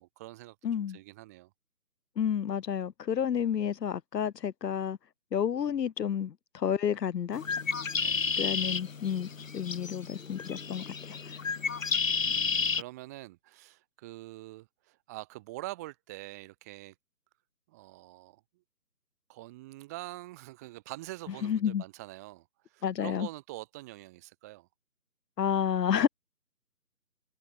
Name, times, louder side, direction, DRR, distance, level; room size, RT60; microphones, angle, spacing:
voice 1, 0.0-1.5 8.0-8.3 12.2-16.9 17.7-18.4 19.3-24.7, right 19 dB, 10° right, 2.0 m, -45 dB
voice 2, 0.6-1.0 2.2-5.0 5.3-7.4 8.4-11.2 21.4-21.8 22.8-23.3 25.4-26.1, left 8 dB, 80° left, 0.7 m, -30 dB
Bird, 7.3-12.8, left 5 dB, 50° left, 2.3 m, -32 dB
figure-of-eight pair, 165°, 49 cm